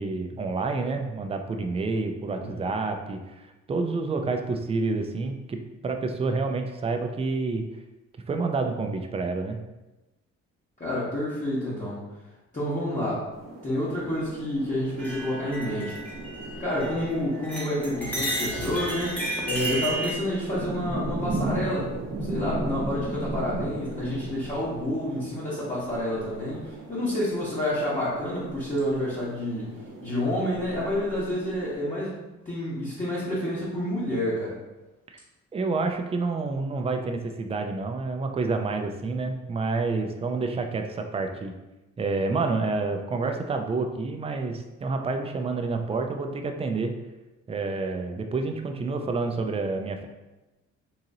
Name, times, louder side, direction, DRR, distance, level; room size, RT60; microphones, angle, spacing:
voice 1, 0.0-7.7 8.3-9.6 35.5-41.5 42.0-46.9 47.5-50.1, right 3 dB, 20° right, 5 dB, 0.4 m, -28 dB
voice 2, 10.8-12.0 12.5-13.3 13.6-16.0 16.6-19.1 19.4-21.9 22.3-29.7 30.0-32.2 32.5-34.5, left 1 dB, 25° left, -10 dB, 1.1 m, -29 dB
sound 1, 13.3-31.8, right 2 dB, 60° right, 0.9 m, -36 dB
sound 2, 15.0-17.1 17.4-20.1, right 1 dB, 5° left, 0.9 m, -32 dB
3.8 x 2.8 x 2.7 m, 1.1 s
cardioid pair, 90°, 30 cm